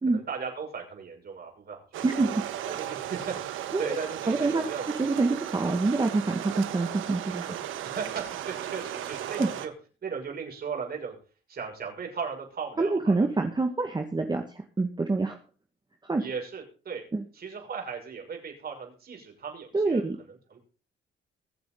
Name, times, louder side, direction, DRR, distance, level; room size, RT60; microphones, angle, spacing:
voice 1, 0.1-2.0 2.7-4.9 5.6-5.7 7.8-9.7 10.0-11.2 11.5-13.3 16.2-17.0 17.3-20.0 20.3-20.6, right 6 dB, 50° right, 1 dB, 6.4 m, -37 dB
sound 1, 1.9-9.7, right 11 dB, 85° right, 1.3 m, -36 dB
voice 2, 2.0-2.4 3.7-3.9 4.3-4.7 5.0-7.6 9.4-9.5 12.8-14.4 14.8-15.4 16.0-16.2 17.1-17.2 19.7-20.2, right 3 dB, 20° right, 3 dB, 1.8 m, -26 dB
22.5 x 7.6 x 4.0 m, 0.37 s
cardioid pair, 90°, 20 cm